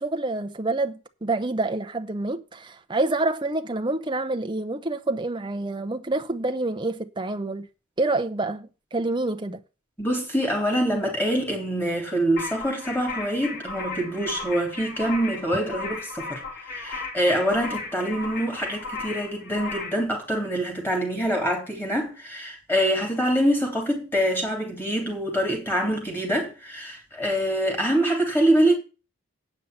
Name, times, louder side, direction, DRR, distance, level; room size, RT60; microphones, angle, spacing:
voice 1, 0.0-7.7 8.0-9.6, right 2 dB, 20° right, 0.8 m, -27 dB
voice 2, 10.0-16.4 16.7-28.7, right 1 dB, 10° left, 3.6 m, -25 dB
sound 1, 12.4-20.0, left 3 dB, 50° left, 4.2 m, -35 dB
9.3 x 5.7 x 8.1 m
head